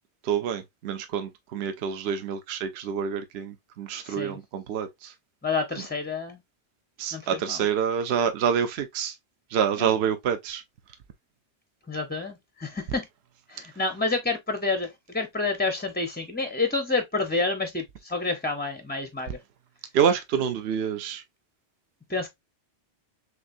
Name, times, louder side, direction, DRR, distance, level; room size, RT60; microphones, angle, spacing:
voice 1, 0.2-5.1 7.0-9.1 9.5-10.6 19.9-21.2, right 7 dB, 70° right, 0.9 m, -27 dB
voice 2, 4.1-4.4 5.4-6.4 7.1-7.2 7.5-7.6 11.9-13.0 13.5-14.9 15.1-19.4 22.1-22.3, left 3 dB, 15° left, 0.4 m, -28 dB
6.5 x 2.5 x 2.6 m
omnidirectional pair, 1.2 m